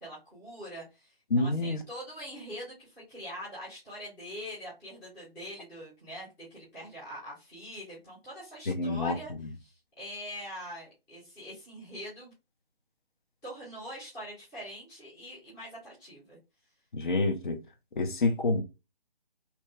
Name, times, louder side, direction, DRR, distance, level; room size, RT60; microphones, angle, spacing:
voice 1, 0.0-9.3 9.6-12.3 13.4-16.4, equal, 10° left, 0.8 m, -43 dB
voice 2, 1.3-1.8 8.7-9.2 16.9-17.6 18.0-18.6, left 2 dB, 55° left, 0.8 m, -27 dB
3.0 x 2.1 x 3.3 m
figure-of-eight pair, 150°, 31 cm